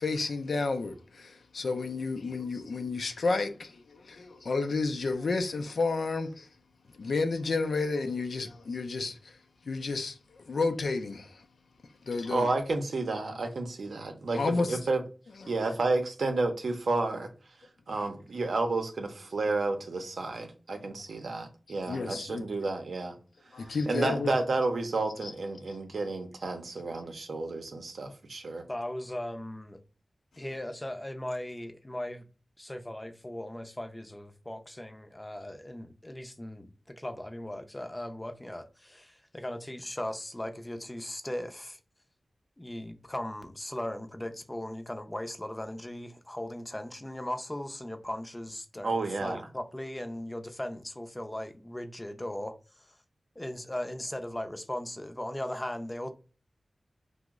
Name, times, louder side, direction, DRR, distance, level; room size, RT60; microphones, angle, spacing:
voice 1, 0.0-6.5 6.9-9.4 9.7-11.4 12.0-12.5 14.4-14.8 15.4-15.5 21.7-22.5 23.5-24.3 25.2-25.3 30.4-30.5, left 3 dB, 90° left, 0.4 m, -31 dB
voice 2, 12.3-15.0 15.5-17.3 17.9-23.2 23.5-28.6 48.8-49.4, right 3 dB, 85° right, 0.6 m, -31 dB
voice 3, 28.7-29.8 30.4-32.3 32.6-41.8 42.6-53.0 53.4-56.1, left 1 dB, 20° left, 0.4 m, -38 dB
2.9 x 2.0 x 3.5 m
wide cardioid pair, 80°, 0 cm